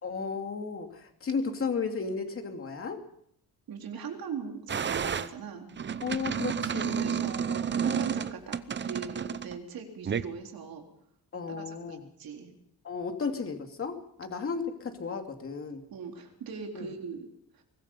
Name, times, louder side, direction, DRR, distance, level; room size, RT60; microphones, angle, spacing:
voice 1, 0.0-3.0 6.0-7.2 11.3-12.0 12.8-15.8 16.7-16.9, left 5 dB, 35° left, 4 dB, 2.6 m, -34 dB
voice 2, 3.7-5.7 6.9-10.8 11.5-12.5 15.9-17.3 17.5-17.6, right 6 dB, 65° right, 3 dB, 3.9 m, -40 dB
sound 1, 4.7-5.3 5.8-9.6 10.1-10.2, right 7 dB, 30° right, 0.8 m, -31 dB
23.5 x 20.0 x 5.5 m, 0.67 s
wide cardioid pair, 175°, 37 cm